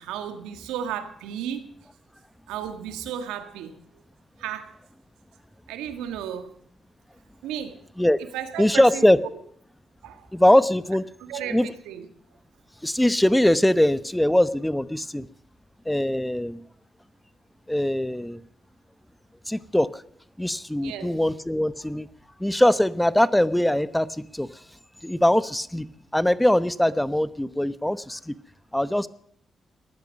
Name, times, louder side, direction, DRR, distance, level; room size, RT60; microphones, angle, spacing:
voice 1, 0.0-1.7 2.5-4.0 4.4-4.7 5.7-6.5 7.4-7.8 8.3-9.1 10.0-10.3 11.2-12.1 20.8-21.2, right 9 dB, 85° right, 9 dB, 1.7 m, -34 dB
voice 2, 8.6-9.2 10.3-11.0 11.5-11.7 12.8-15.3 15.9-16.6 17.7-18.4 19.5-20.0 20.4-22.1 22.4-24.5 25.0-25.9 26.1-28.3 28.7-29.1, left 1 dB, 10° left, 16 dB, 1.0 m, -21 dB
18.5 x 13.0 x 5.4 m, 0.66 s
supercardioid pair, 45°, 0 cm